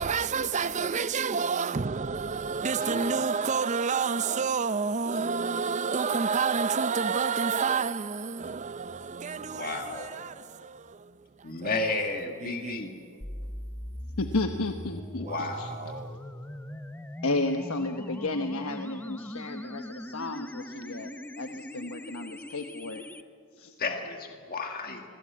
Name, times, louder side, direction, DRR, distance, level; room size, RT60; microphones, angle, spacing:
voice 1, 0.0-12.1 12.4-12.8 15.2-16.2, right 5 dB, 30° right, 0.5 m, -29 dB
voice 2, 2.8-3.1 9.3-10.1 11.4-12.9 15.2-16.2 23.8-25.0, left 4 dB, 40° left, 1.8 m, -33 dB
sound 1, 13.2-23.2, left 1 dB, 10° left, 0.7 m, -40 dB
voice 3, 14.2-15.7 17.2-21.1 21.4-23.0 23.6-23.7, left 2 dB, 70° left, 1.1 m, -32 dB
26.5 x 21.0 x 8.6 m
head